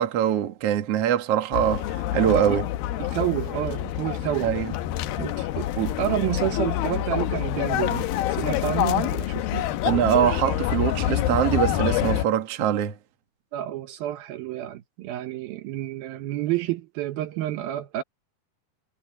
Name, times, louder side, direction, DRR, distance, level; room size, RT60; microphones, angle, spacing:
voice 1, 0.0-2.7 4.4-4.7 5.8-5.9 9.8-12.9, right 10 dB, 50° right, 2.2 m, -23 dB
sound 1, 1.5-12.3, left 13 dB, 75° left, 2.7 m, -26 dB
voice 2, 3.0-4.5 5.2-5.7 6.0-9.7 13.5-18.0, right 13 dB, 75° right, 2.8 m, -29 dB
omnidirectional pair, 4.4 m